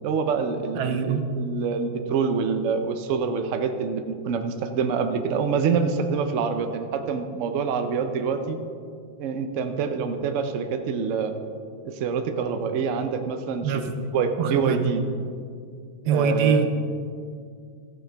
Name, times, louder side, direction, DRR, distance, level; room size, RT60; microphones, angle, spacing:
voice 1, 0.0-8.6 9.2-11.3 11.8-15.0 16.1-16.7, right 5 dB, 85° right, 7 dB, 0.6 m, -26 dB
voice 2, 0.7-1.2 13.6-13.8 14.4-14.8 16.0-16.7, right 6 dB, 65° right, 8 dB, 1.1 m, -24 dB
14.0 x 9.0 x 3.4 m, 2.3 s
omnidirectional pair, 2.2 m